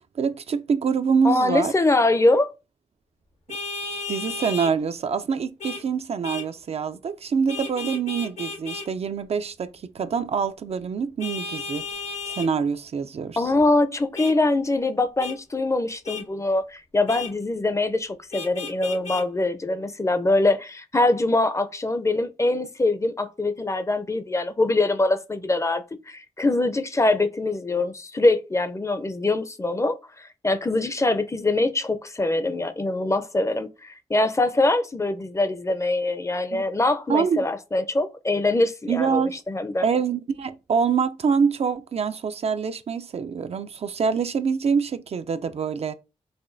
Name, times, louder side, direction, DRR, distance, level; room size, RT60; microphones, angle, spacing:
voice 1, 0.1-1.7 4.1-11.8 12.3-13.4 36.5-36.6 37.1-37.4 38.9-39.4 39.8-45.9, right 6 dB, 55° right, 0.4 m, -25 dB
voice 2, 1.2-2.5 13.4-39.9, left 2 dB, 25° left, 0.5 m, -23 dB
Vehicle horn car horn honking, 3.5-4.7 5.6-5.8 6.2-6.5 7.5-8.9 11.2-12.5 14.1-14.3 15.2-15.4 16.0-16.2 17.1-17.3 18.3-19.2, left 4 dB, 65° left, 0.8 m, -33 dB
4.9 x 2.2 x 2.5 m
cardioid pair, 60°, 13 cm